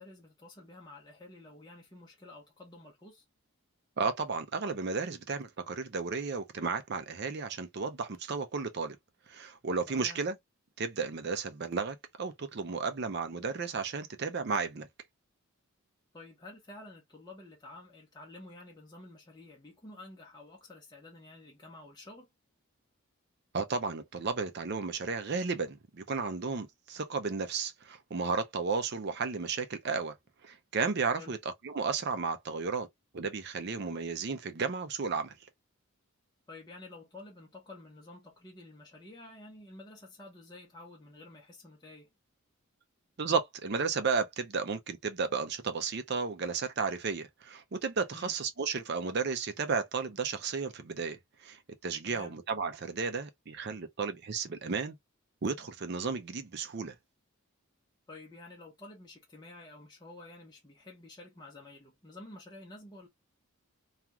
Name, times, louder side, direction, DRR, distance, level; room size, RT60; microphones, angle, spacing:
voice 1, 0.0-3.2 9.9-10.2 16.1-22.3 31.1-31.3 36.5-42.1 48.1-48.3 52.1-52.3 58.1-63.1, left 2 dB, 20° left, 0.8 m, -50 dB
voice 2, 4.0-9.0 9.3-10.4 10.8-14.9 23.5-30.1 30.4-31.4 31.6-32.9 33.1-35.3 43.2-51.2 51.4-54.9 55.4-56.9, right 5 dB, 50° right, 0.5 m, -33 dB
2.4 x 2.3 x 2.9 m
head